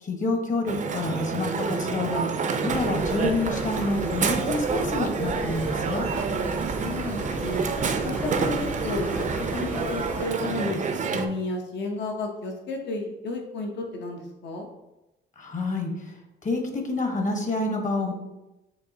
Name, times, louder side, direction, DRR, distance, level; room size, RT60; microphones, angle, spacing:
voice 1, 0.0-2.3 2.6-6.1 15.4-16.1 16.4-18.1, left 2 dB, 40° left, 3 dB, 1.1 m, -28 dB
Crowd, 0.7-11.3, right 5 dB, 40° right, 0.5 m, -28 dB
sound 1, 2.7-10.3, left 1 dB, 5° left, 0.6 m, -37 dB
voice 2, 6.5-7.7 8.0-9.3 9.5-10.8 11.1-14.7, left 2 dB, 65° left, 2 dB, 0.8 m, -32 dB
6.9 x 2.7 x 2.7 m, 0.97 s
cardioid pair, 90°, 20 cm